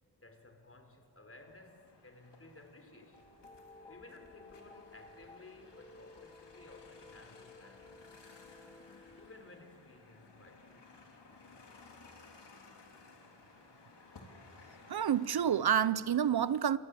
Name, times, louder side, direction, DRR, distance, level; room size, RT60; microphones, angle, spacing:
voice 1, 0.2-3.3 3.9-8.0 9.1-10.9, left 2 dB, 35° left, 4.0 m, -56 dB
sound 1, 1.3-16.2, left 3 dB, 80° left, 3.6 m, -58 dB
sound 2, 3.1-9.3, left 3 dB, 10° left, 3.3 m, -56 dB
voice 2, 14.9-16.8, right 9 dB, 65° right, 0.7 m, -28 dB
29.0 x 24.5 x 8.5 m
wide cardioid pair, 85°, 41 cm